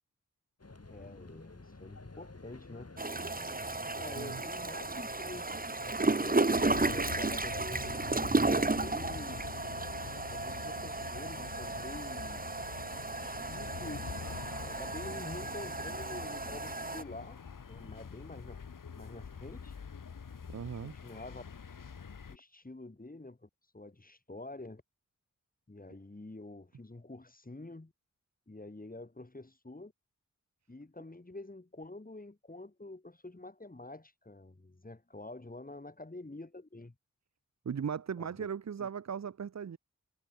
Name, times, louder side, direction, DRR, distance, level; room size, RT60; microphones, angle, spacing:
sound 1, 0.6-7.2, left 3 dB, 50° left, 6.7 m, -50 dB
voice 1, 0.9-3.0 4.0-5.5 6.1-9.5 10.3-12.4 13.2-14.1 14.6-17.4 17.7-19.8 20.8-21.4 22.3-24.8 25.7-27.9 28.5-29.9 30.7-37.0 38.2-38.5 38.8-38.9, left 2 dB, 25° left, 2.1 m, -47 dB
sound 2, 3.0-17.0, right 3 dB, 30° right, 1.2 m, -33 dB
sound 3, 6.6-22.4, left 6 dB, 85° left, 1.4 m, -45 dB
voice 2, 20.5-20.9 37.6-39.8, right 7 dB, 60° right, 0.6 m, -37 dB
wide cardioid pair, 45°, 31 cm